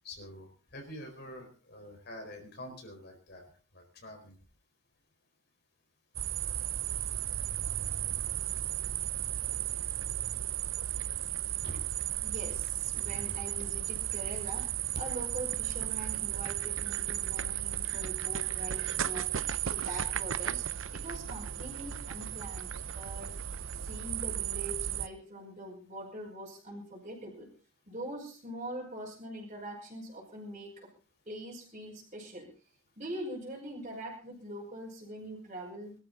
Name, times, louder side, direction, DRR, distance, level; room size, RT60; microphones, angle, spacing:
voice 1, 0.0-4.3 11.6-11.8 13.0-13.2, left 1 dB, 50° left, 2 dB, 4.5 m, -46 dB
sound 1, 6.1-25.1, right 11 dB, 75° right, 0.7 m, -34 dB
voice 2, 12.2-19.3 19.6-20.7 20.9-23.3 23.8-27.5 27.9-30.9 31.3-32.5 33.0-35.9, right 1 dB, 35° right, -4 dB, 5.3 m, -43 dB
23.0 x 13.0 x 4.0 m, 0.36 s
head